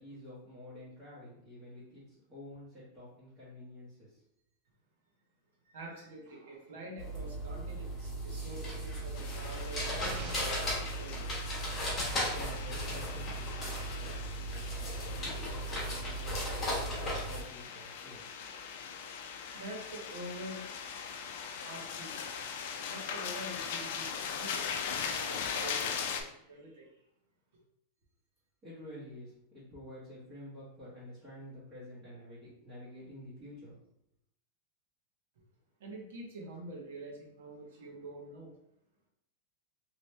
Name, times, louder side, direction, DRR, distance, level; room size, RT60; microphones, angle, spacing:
voice 1, 0.0-4.2 12.1-14.2 14.5-18.2 28.6-33.8, left 1 dB, 25° right, -11 dB, 1.2 m, -50 dB
voice 2, 5.6-10.0 10.3-11.3 19.5-20.7 21.6-22.2 22.9-26.9 27.5-27.6 35.8-38.5, right 1 dB, 75° right, -2 dB, 1.2 m, -46 dB
sound 1, 7.0-17.4, equal, 15° left, 1.2 m, -36 dB
sound 2, 9.1-26.2, left 6 dB, 55° left, 0.4 m, -40 dB
sound 3, 10.0-10.8 12.4-12.5, right 3 dB, 45° right, 0.6 m, -43 dB
3.1 x 2.9 x 3.3 m, 0.75 s
supercardioid pair, 170°, 0 cm